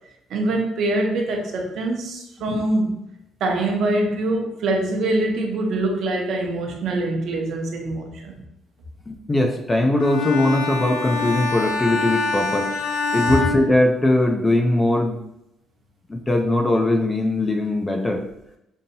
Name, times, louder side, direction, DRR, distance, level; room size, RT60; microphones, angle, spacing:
voice 1, 0.3-2.9 3.4-8.3, right 2 dB, 50° right, 1 dB, 0.7 m, -24 dB
voice 2, 9.1-12.7 13.1-15.2 16.1-18.2, left 1 dB, 15° left, 3 dB, 0.3 m, -20 dB
Bowed string instrument, 10.0-14.5, left 4 dB, 80° left, 0.4 m, -26 dB
5.3 x 2.7 x 2.7 m, 0.83 s
cardioid pair, 170°, 0 cm